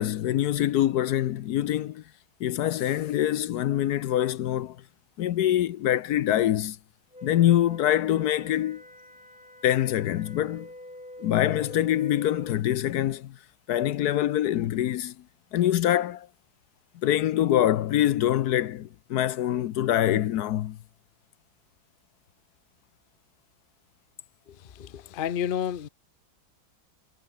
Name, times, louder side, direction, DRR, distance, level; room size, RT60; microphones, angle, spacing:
voice 1, 0.0-2.0 2.4-4.8 5.2-6.8 7.2-8.8 9.6-10.7 11.2-13.4 13.7-15.1 15.5-16.3 17.0-20.8, left 12 dB, 65° left, 1.0 m, -24 dB
Wind instrument woodwind instrument, 7.1-12.6, left 1 dB, 15° left, 5.3 m, -45 dB
voice 2, 24.5-25.9, left 9 dB, 90° left, 0.4 m, -31 dB
omnidirectional pair, 2.2 m